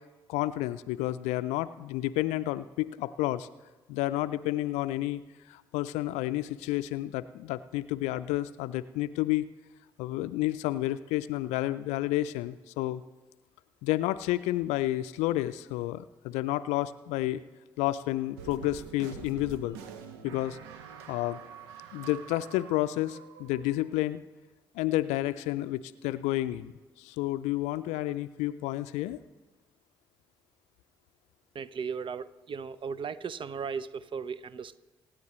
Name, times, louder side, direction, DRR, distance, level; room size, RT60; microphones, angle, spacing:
voice 1, 0.3-3.5 3.9-5.2 5.5-9.4 10.0-13.0 13.8-17.4 17.8-19.8 20.2-20.6 21.1-21.4 21.9-24.2 24.7-26.7 27.0-29.2, left 16 dB, 70° left, 15 dB, 0.4 m, -30 dB
sound 1, 18.4-24.0, right 7 dB, 80° right, 0.8 m, -46 dB
voice 2, 31.5-34.8, right 6 dB, 45° right, 17 dB, 0.6 m, -36 dB
25.5 x 9.7 x 3.1 m, 1.2 s
figure-of-eight pair, 40°, 12 cm